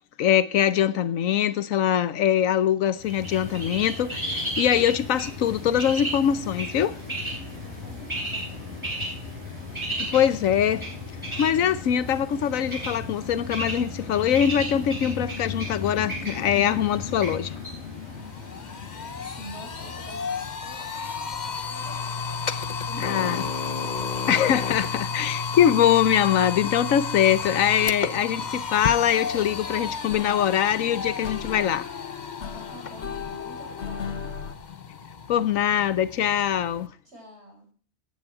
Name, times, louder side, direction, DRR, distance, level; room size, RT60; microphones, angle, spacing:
voice 1, 0.2-7.0 10.1-10.8 11.4-17.6 23.0-23.4 24.3-31.9 35.3-36.9, left 9 dB, 80° left, 1.2 m, -23 dB
Bird, 3.0-20.8, left 1 dB, 20° right, 8.2 m, -34 dB
voice 2, 7.5-8.7 19.2-24.3 32.5-34.4 37.0-37.7, equal, 50° right, 5.9 m, -47 dB
sound 1, 17.8-36.9, left 5 dB, 35° left, 0.9 m, -33 dB
sound 2, 29.0-34.5, left 7 dB, 60° left, 1.4 m, -37 dB
16.0 x 9.8 x 4.8 m
omnidirectional pair, 1.4 m